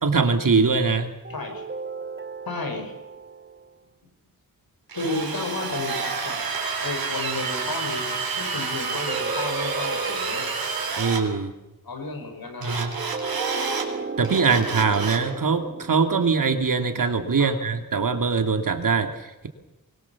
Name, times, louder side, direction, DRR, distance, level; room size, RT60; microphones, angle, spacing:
voice 1, 0.0-1.1 11.0-11.5 12.6-12.9 14.2-19.5, right 5 dB, 65° right, 7 dB, 2.5 m, -22 dB
sound 1, 1.2-3.7 5.4-7.2 8.6-11.3 12.7-17.2, right 4 dB, 30° right, 1.3 m, -35 dB
voice 2, 1.3-1.6 2.5-2.9 5.0-6.4 6.8-10.5 11.8-12.9 17.4-17.6, left 3 dB, 80° left, 5 dB, 5.2 m, -32 dB
Drill, 4.9-11.2 12.6-13.9 14.2-15.3, right 5 dB, 85° right, 4.0 m, -29 dB
24.0 x 21.5 x 7.1 m, 0.99 s
wide cardioid pair, 100°, 35 cm